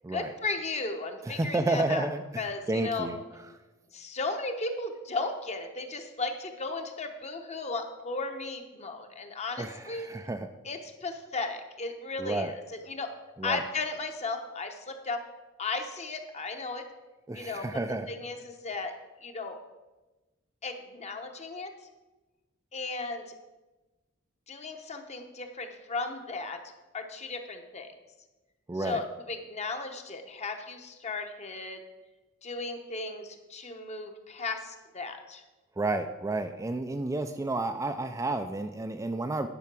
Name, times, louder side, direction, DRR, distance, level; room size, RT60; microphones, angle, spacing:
voice 1, 0.1-2.1 2.4-3.1 3.9-10.1 10.6-13.1 13.4-15.2 15.6-16.8 17.3-17.7 18.1-18.9 19.2-19.6 20.6-21.7 22.7-23.3 24.5-26.6 26.9-27.9 28.7-31.8 32.4-35.4, left 3 dB, 30° left, 6 dB, 0.9 m, -35 dB
voice 2, 1.2-2.4 2.7-3.2 9.6-10.5 12.2-12.5 13.4-13.6 17.3-18.1 28.7-29.0 35.8-39.5, right 2 dB, 15° right, 7 dB, 0.3 m, -31 dB
10.5 x 5.7 x 6.0 m, 1.1 s
head